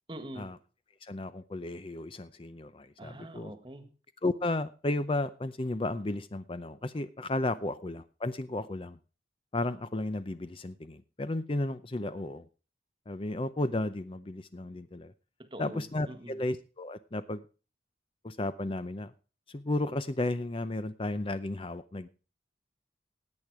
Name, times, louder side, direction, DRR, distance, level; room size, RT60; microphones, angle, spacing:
voice 1, 0.1-0.5 3.0-3.9 15.4-16.4, right 1 dB, 25° right, 10 dB, 1.5 m, -44 dB
voice 2, 1.0-3.5 4.2-9.0 9.5-12.5 13.1-15.1 15.6-17.4 18.2-19.1 19.5-22.1, left 2 dB, 30° left, 13 dB, 0.5 m, -33 dB
17.0 x 9.0 x 4.8 m, 0.36 s
head